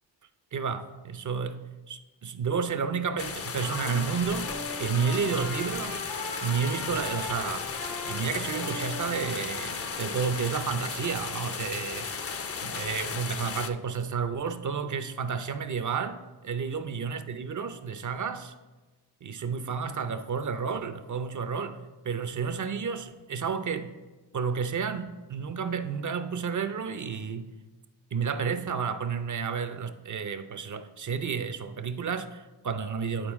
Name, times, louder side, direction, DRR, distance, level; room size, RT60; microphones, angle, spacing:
voice 1, 0.5-4.5 4.8-6.0 6.4-7.7 8.0-12.2 12.6-16.2 16.4-18.5 19.2-21.8 22.0-23.9 24.3-27.6 28.1-33.3, right 6 dB, 45° right, 10 dB, 0.6 m, -31 dB
sound 1, 3.2-13.7, left 5 dB, 35° left, 0.5 m, -35 dB
Trumpet, 3.5-10.8, left 2 dB, 85° left, 2.2 m, -40 dB
9.1 x 4.3 x 3.6 m, 1.2 s
cardioid pair, 55°, 44 cm